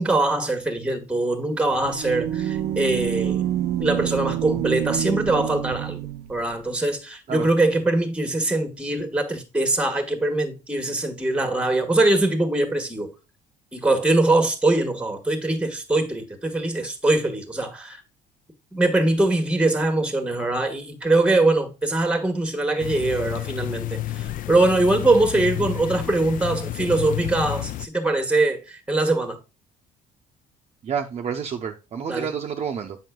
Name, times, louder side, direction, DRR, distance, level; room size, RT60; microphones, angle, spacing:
voice 1, 0.0-3.4 3.8-13.1 13.7-18.0 18.7-29.4 32.1-32.3, right 2 dB, 5° right, 1.3 m, -22 dB
sound 1, 1.6-6.4, right 11 dB, 80° right, 0.5 m, -27 dB
sound 2, 22.8-27.9, left 15 dB, 55° left, 0.4 m, -31 dB
voice 2, 30.8-33.0, right 7 dB, 40° right, 0.6 m, -29 dB
7.6 x 5.6 x 2.2 m
cardioid pair, 110°, 17 cm